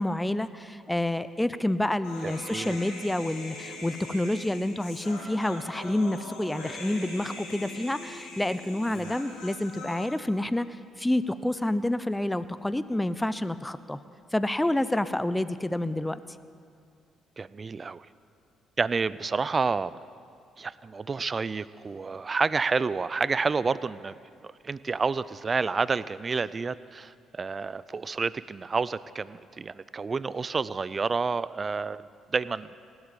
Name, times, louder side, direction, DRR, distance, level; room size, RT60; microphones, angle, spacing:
voice 1, 0.0-14.0 14.3-16.2, left 1 dB, 10° left, 14 dB, 0.7 m, -28 dB
Human voice, 2.0-10.1, left 2 dB, 85° left, 3.4 m, -42 dB
voice 2, 2.2-2.8 8.9-9.2 17.4-18.1 18.8-20.0 20.6-24.2 24.4-32.7, right 4 dB, 35° right, 18 dB, 0.5 m, -29 dB
17.5 x 8.1 x 9.1 m, 2.3 s
hypercardioid pair, 50°, 0 cm